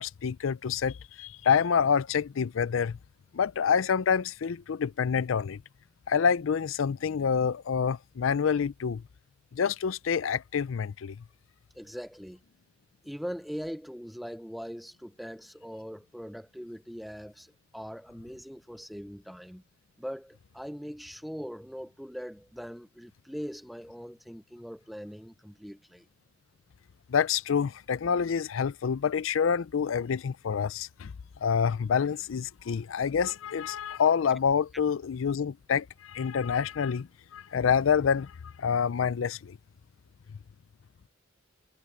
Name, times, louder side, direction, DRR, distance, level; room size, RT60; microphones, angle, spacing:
voice 1, 0.0-3.0 3.3-5.6 6.1-9.0 9.5-11.2 27.1-31.1 31.4-39.6, left 7 dB, 80° left, 0.5 m, -27 dB
voice 2, 11.7-12.4 13.0-19.6 20.0-26.1, equal, ahead, 0.5 m, -41 dB
head